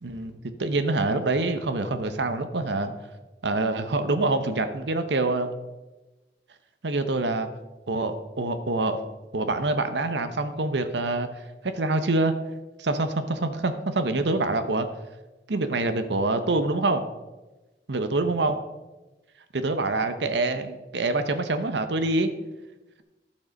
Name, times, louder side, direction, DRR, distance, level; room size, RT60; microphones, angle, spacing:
voice 1, 0.0-2.9 3.4-5.5 6.8-7.5 7.9-9.0 9.3-11.3 11.6-12.3 12.8-14.9 15.5-17.0 17.9-18.6 19.5-22.3, right 2 dB, 85° right, 9 dB, 0.9 m, -25 dB
12.0 x 6.5 x 5.2 m, 1.1 s
head